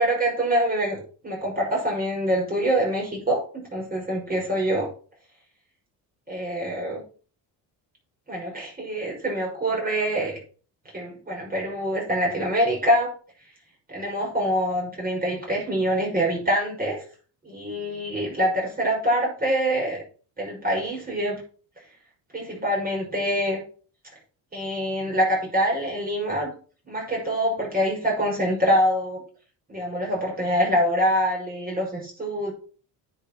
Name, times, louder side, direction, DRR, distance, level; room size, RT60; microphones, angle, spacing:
voice 1, 0.0-4.9 6.3-7.0 8.3-10.4 10.9-13.1 13.9-17.0 17.4-20.0 20.4-21.4 22.3-23.6 24.5-26.5 26.9-29.2 29.7-32.5, equal, 20° right, 6.1 m, -25 dB
10.0 x 7.7 x 6.1 m
cardioid pair, 115°, 42 cm